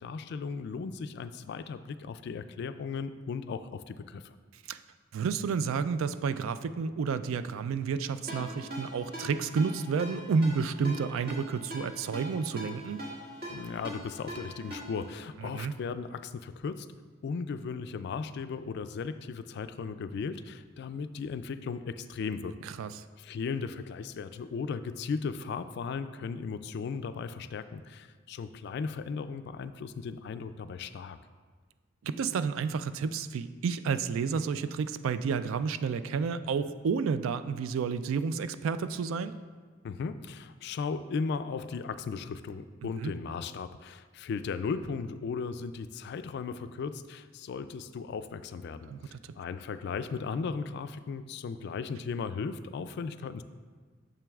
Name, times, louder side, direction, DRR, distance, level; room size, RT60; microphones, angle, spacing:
voice 1, 0.0-4.4 13.5-16.9 17.2-22.6 23.2-31.2 39.8-53.4, left 5 dB, 55° left, 12 dB, 0.3 m, -36 dB
voice 2, 5.1-13.0 15.4-15.7 22.6-23.0 32.0-39.4 42.8-43.1 48.9-49.3, right 5 dB, 90° right, 13 dB, 0.3 m, -31 dB
Ringtone, 8.3-15.1, equal, 55° right, 1.8 m, -42 dB
9.0 x 6.8 x 2.3 m, 1.5 s
head